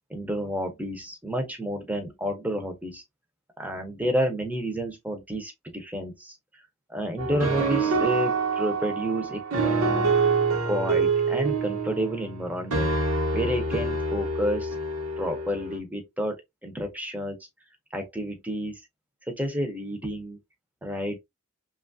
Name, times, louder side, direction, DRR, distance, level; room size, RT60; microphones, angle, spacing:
voice 1, 0.1-3.0 3.6-6.6 6.9-10.3 10.7-14.7 15.2-17.4 17.9-18.8 19.3-20.4 20.8-21.2, equal, 5° right, 0.5 m, -30 dB
sound 1, 7.2-15.8, right 4 dB, 85° right, 0.9 m, -26 dB
3.0 x 2.3 x 2.5 m
head